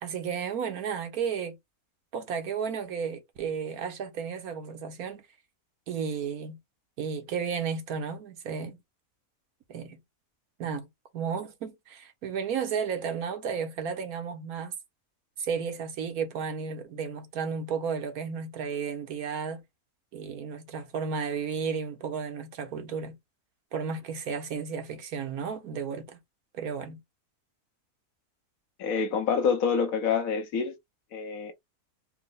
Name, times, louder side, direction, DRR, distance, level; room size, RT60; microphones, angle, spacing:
voice 1, 0.0-1.6 2.1-5.2 5.9-6.6 7.0-8.8 9.7-10.0 10.6-10.9 11.1-14.7 15.4-19.6 20.1-23.2 23.7-26.2 26.5-27.0, right 6 dB, 80° right, 1.4 m, -33 dB
voice 2, 28.8-30.7 31.1-31.5, left 6 dB, 70° left, 1.2 m, -27 dB
4.5 x 2.1 x 3.8 m
omnidirectional pair, 1.6 m